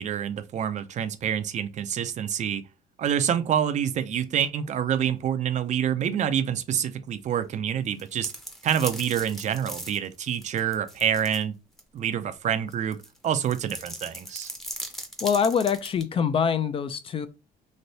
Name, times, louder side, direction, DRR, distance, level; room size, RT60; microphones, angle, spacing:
voice 1, 0.0-2.6 3.0-8.3 8.6-11.6 11.9-13.0 13.2-14.5, right 9 dB, 45° right, 0.4 m, -27 dB
sound 1, 7.8-11.4 11.8-11.9 12.7-16.0, equal, ahead, 0.7 m, -38 dB
voice 2, 15.2-17.3, left 7 dB, 35° left, 0.3 m, -24 dB
3.1 x 2.6 x 2.7 m
cardioid pair, 110°, 17 cm